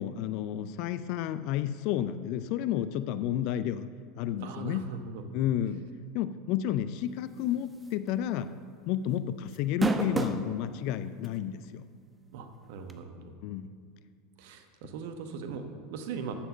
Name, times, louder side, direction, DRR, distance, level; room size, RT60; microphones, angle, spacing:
voice 1, 0.0-3.9 4.2-4.9 5.3-5.8 6.1-8.5 8.9-11.8 13.4-13.7, left 11 dB, 55° left, 13 dB, 0.4 m, -31 dB
voice 2, 4.4-5.3 12.3-13.4 14.4-16.3, right 5 dB, 65° right, 7 dB, 1.1 m, -40 dB
sound 1, 7.8-8.1 8.4-8.5 9.5-10.5 11.2-11.3 12.9-13.0, right 2 dB, 15° right, 0.8 m, -28 dB
9.9 x 7.0 x 6.7 m, 2.1 s
hypercardioid pair, 85°, 0 cm